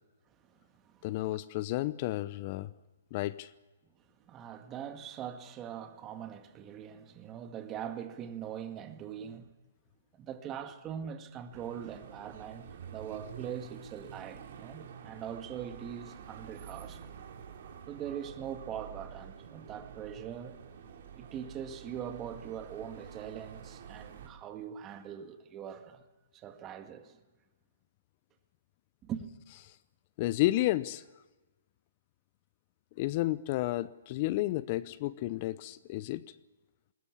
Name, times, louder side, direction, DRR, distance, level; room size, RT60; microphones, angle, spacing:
voice 1, 1.0-2.7 3.1-3.5 30.2-31.0 33.0-36.3, left 17 dB, 40° left, 0.7 m, -31 dB
voice 2, 4.3-9.5 10.1-17.1 17.9-20.6 21.2-26.0 26.3-27.2 29.0-29.3, right 9 dB, 25° right, 2.1 m, -42 dB
sound 1, 11.5-24.3, right 7 dB, 55° right, 3.4 m, -48 dB
20.5 x 20.5 x 8.5 m
hypercardioid pair, 130°, 0 cm